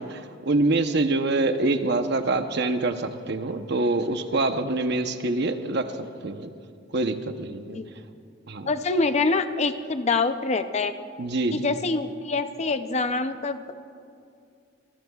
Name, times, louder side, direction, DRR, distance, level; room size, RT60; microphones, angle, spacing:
voice 1, 0.0-5.9 6.2-6.5 6.9-7.8 8.5-8.7 11.2-11.7, right 2 dB, 60° right, 8 dB, 0.8 m, -25 dB
voice 2, 8.7-10.9 11.5-13.7, left 3 dB, 35° left, 9 dB, 0.6 m, -25 dB
26.5 x 18.5 x 2.4 m, 2.4 s
head